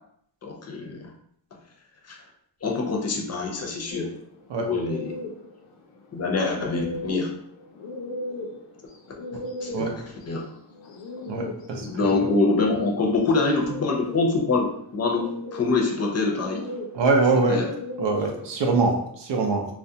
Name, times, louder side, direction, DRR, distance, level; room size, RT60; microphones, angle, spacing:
voice 1, 0.4-1.1 2.1-2.2 2.6-4.1 4.6-5.2 6.1-7.3 9.6-10.5 11.4-11.5 11.8-16.7 17.5-17.7, left 3 dB, 35° left, 1 dB, 0.6 m, -25 dB
sound 1, 3.9-18.9, left 2 dB, 90° left, 0.5 m, -38 dB
voice 2, 11.3-12.3 16.9-17.7 18.0-19.7, right 3 dB, 80° right, 3 dB, 0.6 m, -23 dB
2.3 x 2.1 x 2.7 m, 0.69 s
cardioid pair, 85°, 43 cm